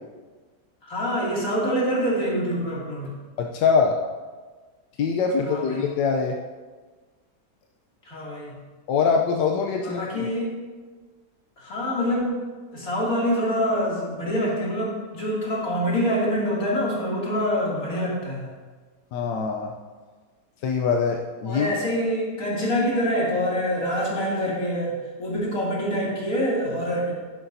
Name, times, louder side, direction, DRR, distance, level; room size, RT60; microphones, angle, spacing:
voice 1, 0.8-3.1 5.5-5.9 8.0-8.6 9.8-10.6 11.6-12.4 12.7-18.6 21.4-27.1, equal, 55° left, -5 dB, 3.1 m, -25 dB
voice 2, 3.4-4.0 5.0-6.4 8.9-10.3 19.1-19.7 20.6-21.7, left 5 dB, 85° left, 2 dB, 1.3 m, -23 dB
11.0 x 11.0 x 2.7 m, 1.4 s
omnidirectional pair, 1.8 m